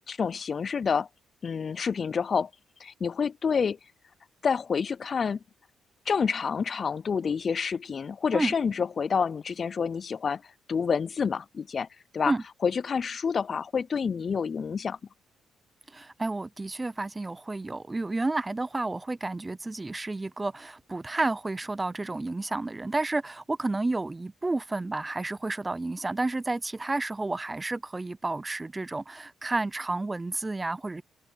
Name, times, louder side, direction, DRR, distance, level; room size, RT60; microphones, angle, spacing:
voice 1, 0.1-1.1 1.4-2.5 2.8-3.8 4.4-5.4 6.1-10.4 10.7-11.9 12.1-12.3 12.6-15.0, left 6 dB, 45° left, 0.4 m, -28 dB
voice 2, 15.9-31.0, right 2 dB, 20° right, 0.6 m, -31 dB
open air
cardioid pair, 90°, 0 cm